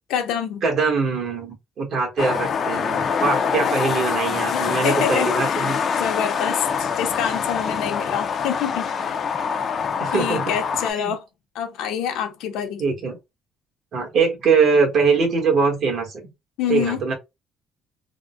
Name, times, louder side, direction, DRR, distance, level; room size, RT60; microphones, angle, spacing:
voice 1, 0.1-0.6 4.5-5.7 5.9-8.9 10.1-11.2 11.5-12.8 16.6-17.0, left 8 dB, 80° left, 0.7 m, -26 dB
voice 2, 0.6-5.8 10.0-10.4 11.0-11.1 12.8-13.2 13.9-16.2 16.7-17.1, right 5 dB, 50° right, 1.3 m, -22 dB
sound 1, 2.2-10.9, left 6 dB, 40° left, 0.4 m, -24 dB
3.6 x 2.1 x 2.5 m
cardioid pair, 155°, 0 cm